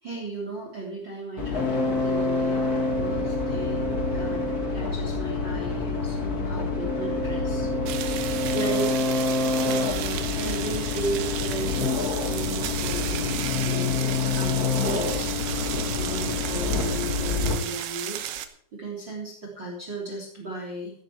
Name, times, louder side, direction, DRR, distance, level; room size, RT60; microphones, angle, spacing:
voice 1, 0.0-4.4 4.7-7.7 8.4-8.9 9.6-15.3 16.0-18.3 18.7-20.9, right 2 dB, 25° right, 0 dB, 3.1 m, -35 dB
sound 1, 1.4-17.5, left 3 dB, 90° left, 0.8 m, -27 dB
sound 2, 7.9-18.5, right 11 dB, 80° right, 2.3 m, -34 dB
15.5 x 11.5 x 4.6 m, 0.62 s
omnidirectional pair, 6.0 m